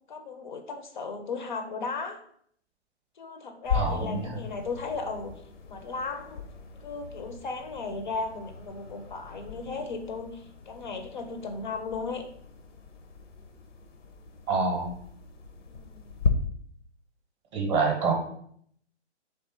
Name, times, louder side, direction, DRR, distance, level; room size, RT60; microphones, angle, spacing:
voice 1, 0.0-2.2 3.2-5.3 5.6-6.4 6.8-12.3 15.7-16.2, left 4 dB, 45° left, 7 dB, 0.4 m, -36 dB
sound 1, 3.6-16.3, left 6 dB, 90° left, 0.7 m, -37 dB
voice 2, 3.7-4.2 14.5-14.9 17.5-18.1, right 4 dB, 25° right, 2 dB, 0.7 m, -26 dB
3.3 x 3.2 x 4.2 m, 0.66 s
hypercardioid pair, 140°, 36 cm